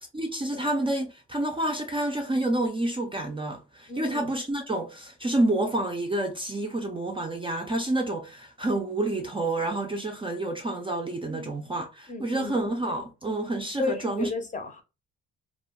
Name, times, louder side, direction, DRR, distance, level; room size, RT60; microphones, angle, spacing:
voice 1, 0.1-14.3, right 1 dB, 15° right, 0.4 m, -29 dB
voice 2, 3.9-4.3 11.3-11.5 12.1-12.6 13.8-14.8, left 3 dB, 25° left, 0.6 m, -33 dB
2.2 x 2.1 x 3.6 m
cardioid pair, 90°, 30 cm